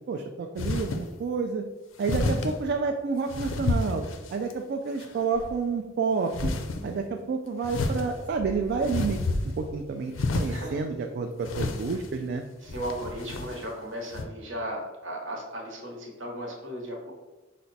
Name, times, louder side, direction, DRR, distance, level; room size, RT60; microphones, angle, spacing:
voice 1, 0.0-1.6 2.0-4.0 4.3-6.5 6.8-9.2 9.6-12.4, right 4 dB, 55° right, 3 dB, 0.3 m, -29 dB
sound 1, 0.6-1.1 2.0-2.6 3.3-4.5 5.0-5.5 6.3-6.8 7.6-9.7 10.1-10.7 11.4-12.2 12.7-13.7 14.1-14.2, left 2 dB, 75° left, 0.5 m, -30 dB
voice 2, 10.5-10.8 12.6-17.1, equal, 75° right, -1 dB, 1.0 m, -36 dB
5.7 x 2.2 x 4.0 m, 1.1 s
head